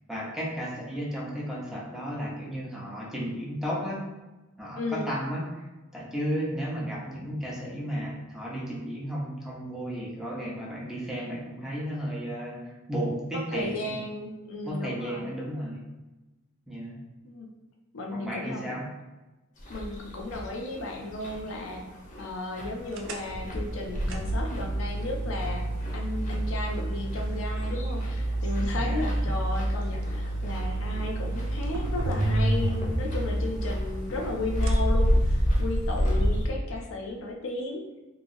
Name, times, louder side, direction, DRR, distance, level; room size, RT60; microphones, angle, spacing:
voice 1, 0.1-4.0 4.6-5.4 5.9-13.9 14.6-15.8 16.7-17.0 18.1-18.8 28.7-29.3, equal, 5° right, -5 dB, 0.6 m, -33 dB
voice 2, 4.8-5.1 13.3-15.3 17.2-17.5 17.9-18.7 19.7-21.8 22.2-38.0, left 2 dB, 80° left, 1 dB, 0.5 m, -34 dB
sound 1, 19.6-36.5, equal, 40° left, 0.7 m, -31 dB
sound 2, 22.9-35.8, right 1 dB, 70° right, 0.4 m, -30 dB
3.0 x 2.6 x 2.6 m, 1.1 s
head